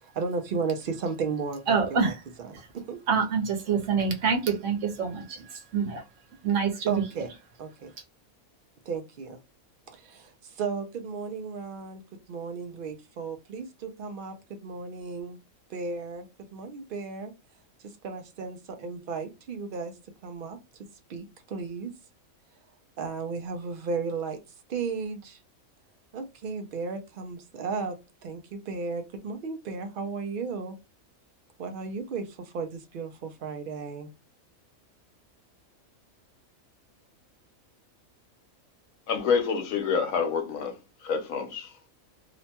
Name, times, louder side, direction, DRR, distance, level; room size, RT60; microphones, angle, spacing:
voice 1, 0.0-3.0 6.9-7.9 8.9-9.4 9.9-12.0 12.3-15.4 15.7-16.3 16.5-17.3 17.8-19.9 20.2-20.6 21.1-21.9 23.0-24.4 24.7-25.4 26.1-28.0 28.2-30.8 31.6-34.1, right 4 dB, 80° right, 0.4 m, -34 dB
voice 2, 1.7-2.1 3.1-6.0 6.4-7.0, right 6 dB, 65° right, 1.1 m, -26 dB
voice 3, 39.1-40.7 41.0-41.7, left 6 dB, 75° left, 1.1 m, -27 dB
2.9 x 2.1 x 2.8 m
omnidirectional pair, 1.5 m